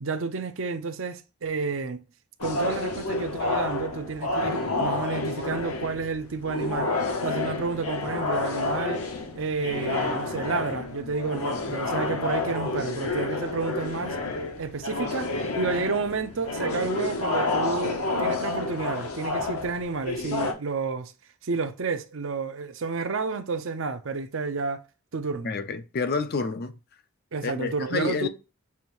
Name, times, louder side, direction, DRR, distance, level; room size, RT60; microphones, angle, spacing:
voice 1, 0.0-2.0 2.4-6.9 7.2-9.0 9.4-14.2 14.6-21.1 21.4-24.8 25.1-25.5 27.3-28.3, right 4 dB, 60° right, 0.6 m, -30 dB
sound 1, 2.4-20.5, left 3 dB, 80° left, 0.9 m, -29 dB
voice 2, 25.4-26.7 27.4-28.3, left 4 dB, 45° left, 0.4 m, -29 dB
7.0 x 2.6 x 3.0 m
head